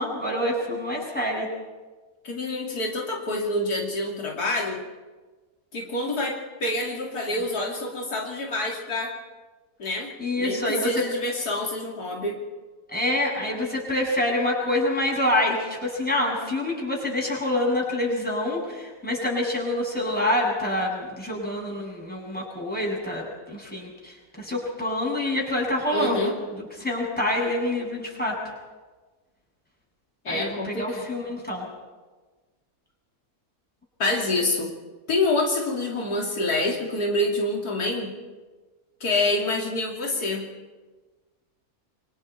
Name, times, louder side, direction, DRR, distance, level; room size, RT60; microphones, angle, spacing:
voice 1, 0.0-1.5 10.2-11.0 12.9-26.3 26.6-28.3 30.3-31.6, left 1 dB, 5° left, -3 dB, 7.6 m, -26 dB
voice 2, 2.2-4.8 5.7-9.1 9.8-10.1 10.4-12.4 25.9-26.3 30.3-31.1 34.0-34.7 35.1-38.1 39.0-40.5, left 2 dB, 90° left, -1 dB, 3.4 m, -27 dB
29.0 x 25.0 x 4.6 m, 1.3 s
omnidirectional pair, 1.6 m